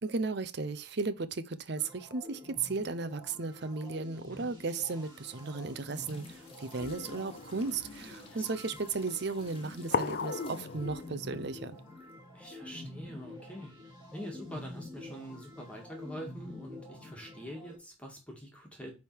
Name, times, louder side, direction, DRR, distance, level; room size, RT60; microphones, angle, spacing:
voice 1, 0.0-11.8, right 4 dB, 55° right, 0.7 m, -35 dB
sound 1, 1.8-17.8, left 2 dB, 20° right, 2.7 m, -48 dB
sound 2, 5.9-12.2 12.5-12.6, left 5 dB, 30° left, 1.3 m, -58 dB
sound 3, 6.8-11.8, left 5 dB, 50° left, 0.5 m, -38 dB
voice 2, 12.3-13.7 14.1-18.9, equal, 5° left, 1.8 m, -45 dB
9.3 x 3.6 x 4.6 m
head